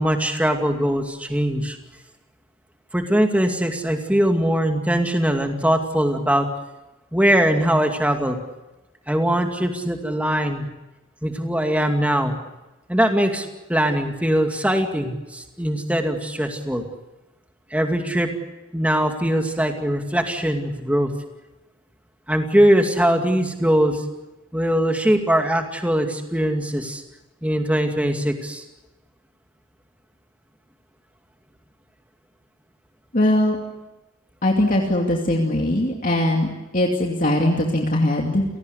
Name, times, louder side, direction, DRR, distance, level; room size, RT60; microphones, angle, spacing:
voice 1, 0.0-1.8 2.9-6.5 7.1-8.4 9.1-10.7 11.2-12.3 12.9-16.8 17.7-18.3 18.7-21.1 22.3-24.0 24.5-27.0 27.4-28.6, equal, 5° right, 4 dB, 2.4 m, -21 dB
voice 2, 33.1-33.6 34.4-38.4, left 1 dB, 40° left, 0 dB, 2.6 m, -20 dB
29.5 x 18.5 x 8.2 m, 1.1 s
head